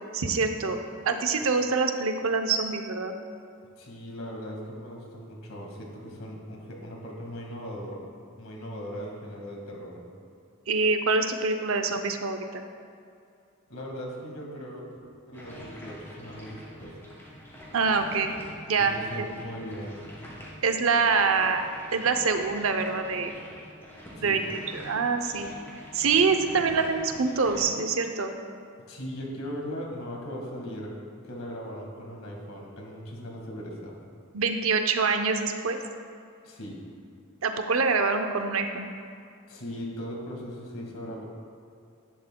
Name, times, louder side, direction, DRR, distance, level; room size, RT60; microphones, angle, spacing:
voice 1, 0.1-0.8 1.0-3.1 10.7-12.6 17.7-18.3 18.7-18.9 19.2-19.3 20.6-21.6 21.9-23.3 24.2-24.4 24.7-25.5 25.9-28.3 34.3-35.8 37.4-38.9, right 4 dB, 70° right, 6 dB, 0.7 m, -25 dB
voice 2, 3.8-8.0 8.4-10.0 13.7-14.8 15.3-17.0 18.8-20.0 24.1-24.4 28.9-30.9 31.2-33.9 36.4-36.8 39.5-41.2, equal, 75° left, -1 dB, 1.9 m, -38 dB
sound 1, 15.3-27.6, equal, 10° left, 2.0 m, -45 dB
11.0 x 10.5 x 2.3 m, 2.4 s
head